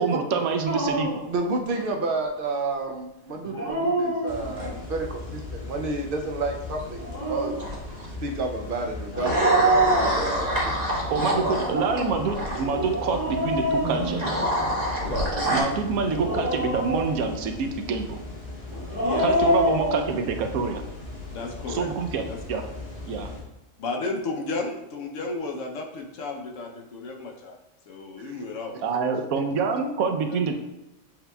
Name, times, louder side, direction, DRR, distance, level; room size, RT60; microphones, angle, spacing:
voice 1, 0.0-1.1 11.1-14.2 15.5-18.2 19.2-20.8 21.7-22.2 22.5-22.6 23.1-23.3 28.8-30.6, right 5 dB, 90° right, 5 dB, 1.1 m, -26 dB
Dog, 0.6-1.3 3.4-4.7 6.8-7.6 9.1-10.6 11.5-14.7 16.0-17.4 18.7-20.0, right 1 dB, 10° right, 1.4 m, -26 dB
voice 2, 1.3-10.8 11.1-11.2 28.2-28.4, right 3 dB, 65° right, 3 dB, 0.5 m, -31 dB
sound 1, 4.3-23.4, left 3 dB, 35° left, 1.1 m, -38 dB
sound 2, 7.6-8.1 9.2-12.6 13.8-15.6, equal, 35° right, 0.9 m, -26 dB
voice 3, 21.3-21.9 22.3-22.4 23.8-27.6 27.9-28.8 30.3-30.4, left 3 dB, 70° left, 2 dB, 0.9 m, -33 dB
7.6 x 2.9 x 2.2 m, 0.97 s
omnidirectional pair, 1.4 m